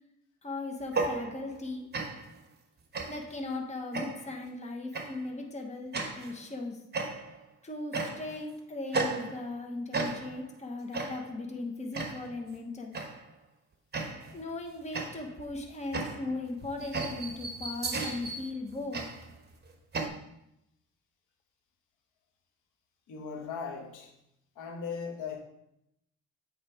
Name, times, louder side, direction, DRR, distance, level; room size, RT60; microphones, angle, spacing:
voice 1, 0.4-1.9 3.0-6.8 7.6-13.0 14.3-19.0, left 2 dB, 20° left, 2 dB, 1.1 m, -38 dB
sound 1, 0.8-1.7 1.9-2.4 2.9-3.4 3.9-4.4 4.9-5.2 5.9-6.4 6.9-7.4 7.9-8.4 8.9-9.6 9.9-10.5 10.9-11.4 11.9-12.4 12.9-13.3 13.9-14.4 14.9-20.1, right 3 dB, 35° right, 1.1 m, -35 dB
voice 2, 23.1-24.1 24.5-25.4, left 5 dB, 90° left, 2 dB, 1.2 m, -38 dB
8.0 x 3.3 x 4.9 m, 0.81 s
cardioid pair, 90°, 30 cm